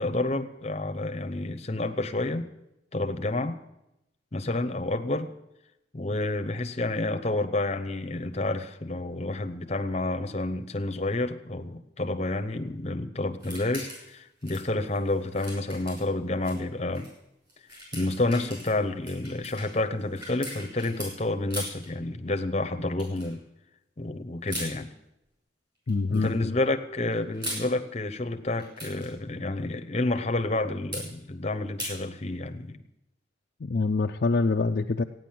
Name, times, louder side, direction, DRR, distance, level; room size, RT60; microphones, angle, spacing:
voice 1, 0.0-2.5 2.9-3.6 4.3-5.3 5.9-17.1 17.9-23.4 24.0-24.9 26.1-32.8, left 2 dB, 35° left, 8 dB, 0.8 m, -29 dB
sound 1, 13.4-14.1 14.4-16.6 16.9-17.1 17.5-21.1 21.5-21.9 23.0-23.3 24.5-24.7 25.9-26.3 27.1-27.7 28.5-29.1 30.9-31.1 31.8-32.0, equal, 20° right, 6.0 m, -39 dB
voice 2, 25.9-26.6 33.6-35.0, left 3 dB, 50° left, 4 dB, 0.4 m, -25 dB
15.5 x 9.3 x 7.6 m, 0.88 s
head